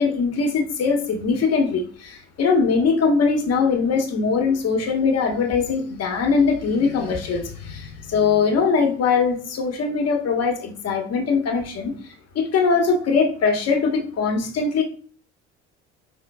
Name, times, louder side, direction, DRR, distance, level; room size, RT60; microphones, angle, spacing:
voice 1, 0.0-14.8, left 5 dB, 45° left, 4 dB, 1.3 m, -21 dB
5.0 x 3.8 x 2.2 m, 0.44 s
figure-of-eight pair, 60°, 36 cm